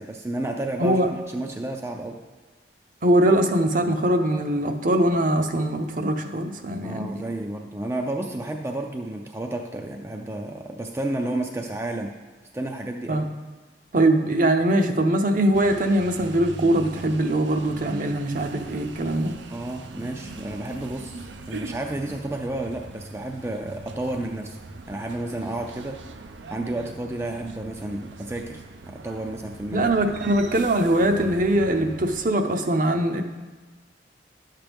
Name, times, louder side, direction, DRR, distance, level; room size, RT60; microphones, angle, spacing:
voice 1, 0.0-2.2 6.8-12.1 12.5-13.2 19.5-24.6 24.9-26.0 26.5-29.9, right 1 dB, 15° right, 2 dB, 0.4 m, -31 dB
voice 2, 0.8-1.1 3.0-7.1 13.1-13.3 13.9-19.4 29.7-33.2, right 1 dB, 45° right, 6 dB, 0.7 m, -22 dB
sound 1, 15.5-32.2, right 2 dB, 80° right, 0.6 m, -41 dB
11.0 x 7.5 x 3.5 m, 1.3 s
head